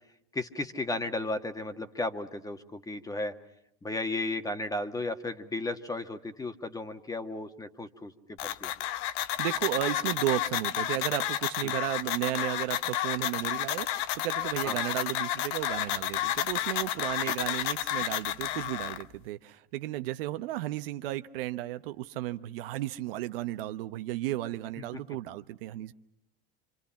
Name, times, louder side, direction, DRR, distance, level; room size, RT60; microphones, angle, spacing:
voice 1, 0.3-3.3 3.8-8.7 11.6-11.7 14.6-14.8 17.2-17.3 24.8-25.0, left 2 dB, 10° left, 8 dB, 1.6 m, -34 dB
sound 1, 8.4-19.0, left 12 dB, 60° left, 1.0 m, -31 dB
voice 2, 9.4-25.9, right 15 dB, 70° right, 10 dB, 1.0 m, -34 dB
27.0 x 25.5 x 5.8 m, 0.80 s
supercardioid pair, 110°, 29 cm